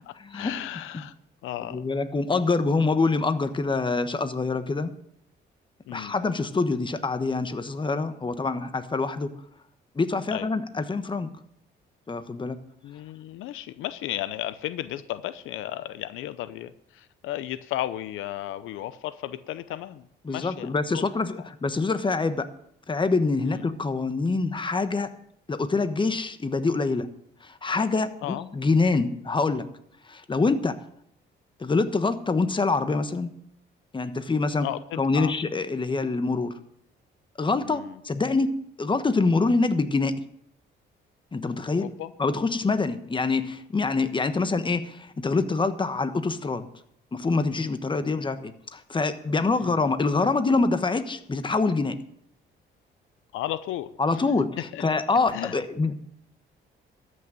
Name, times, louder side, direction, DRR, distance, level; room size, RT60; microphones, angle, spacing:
voice 1, 0.1-1.1 1.4-1.8 5.9-6.1 10.3-10.5 12.8-21.1 21.4-21.5 23.4-23.7 28.2-28.5 34.6-34.8 35.1-35.3 37.6-38.0 41.8-42.1 47.9-48.1 49.6-49.8 53.3-54.2 54.7-54.8 55.3-55.5, left 13 dB, 90° left, 14 dB, 0.7 m, -34 dB
voice 2, 1.7-4.9 5.9-9.3 9.9-11.3 12.1-12.6 20.2-22.5 22.9-25.1 25.5-27.1 27.4-29.7 30.1-30.8 31.6-33.3 33.9-34.7 35.0-36.5 37.4-38.5 38.8-40.1 41.3-41.9 42.2-46.7 47.1-52.0 54.0-55.9, left 3 dB, 25° left, 10 dB, 1.2 m, -25 dB
13.5 x 6.4 x 9.0 m, 0.71 s
cardioid pair, 90°, 20 cm